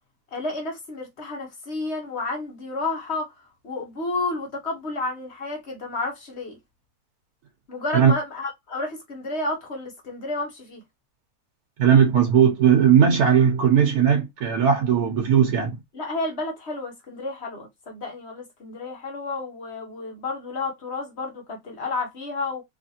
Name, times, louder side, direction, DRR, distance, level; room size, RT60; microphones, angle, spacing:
voice 1, 0.3-3.3 3.6-6.6 7.7-10.8 15.9-22.6, left 2 dB, 50° left, 1.1 m, -31 dB
voice 2, 11.8-15.8, right 8 dB, 85° right, 1.3 m, -18 dB
3.2 x 2.5 x 2.7 m
omnidirectional pair, 1.6 m